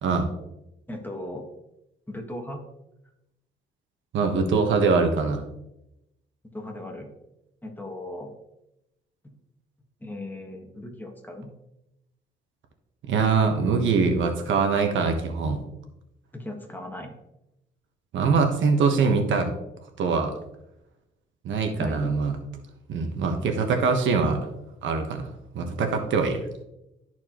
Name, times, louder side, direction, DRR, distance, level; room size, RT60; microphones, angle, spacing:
voice 1, 0.9-1.5 2.1-2.6 6.5-7.1 7.6-8.3 10.0-11.5 16.3-17.1 21.8-22.1, left 1 dB, 10° left, 2 dB, 1.5 m, -37 dB
voice 2, 4.1-5.4 13.0-15.6 18.1-19.5 20.0-20.3 21.4-22.4 22.9-24.5 24.8-25.3 25.5-26.4, right 4 dB, 75° right, 5 dB, 1.2 m, -23 dB
13.0 x 4.5 x 3.0 m, 0.88 s
cardioid pair, 90°, 20 cm